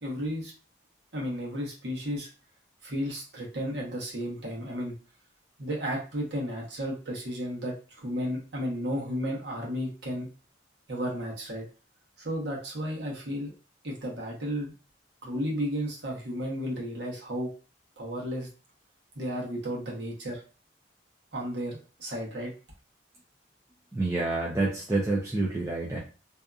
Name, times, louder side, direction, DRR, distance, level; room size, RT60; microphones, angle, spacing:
voice 1, 0.0-0.5 1.1-2.3 2.8-4.9 5.6-10.3 10.9-11.7 12.2-13.5 13.8-14.7 15.2-17.5 18.0-18.5 19.1-20.4 21.3-22.5, equal, 60° right, -3 dB, 1.0 m, -33 dB
voice 2, 23.9-26.0, right 2 dB, 15° right, -4 dB, 0.4 m, -28 dB
2.7 x 2.4 x 2.3 m, 0.35 s
head